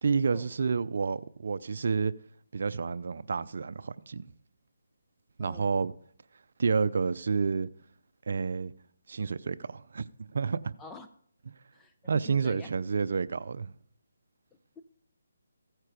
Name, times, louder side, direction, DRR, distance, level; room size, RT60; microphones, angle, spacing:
voice 1, 0.0-2.1 2.5-4.2 5.4-5.9 6.6-7.7 8.3-8.7 9.1-10.7 12.1-13.7, right 5 dB, 60° right, 0.5 m, -29 dB
voice 2, 5.4-5.8 10.8-11.1 11.7-12.7 14.8-14.9, left 3 dB, 10° left, 0.7 m, -48 dB
15.0 x 9.0 x 5.1 m
hypercardioid pair, 165°, 0 cm